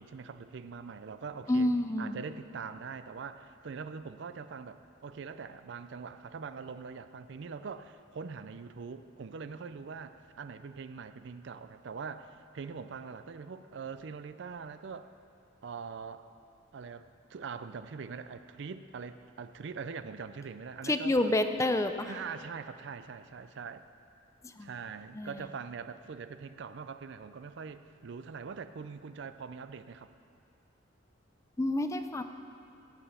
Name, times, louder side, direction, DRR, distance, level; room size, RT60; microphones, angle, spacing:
voice 1, 0.0-1.7 2.0-15.1 15.6-16.3 16.7-21.3 22.1-23.8 24.6-30.1, right 5 dB, 65° right, 11 dB, 0.4 m, -43 dB
voice 2, 1.5-2.2 20.8-22.1 24.4-24.7 25.1-25.4 31.6-32.2, left 1 dB, 15° left, 8 dB, 0.4 m, -29 dB
16.5 x 6.9 x 5.7 m, 2.6 s
head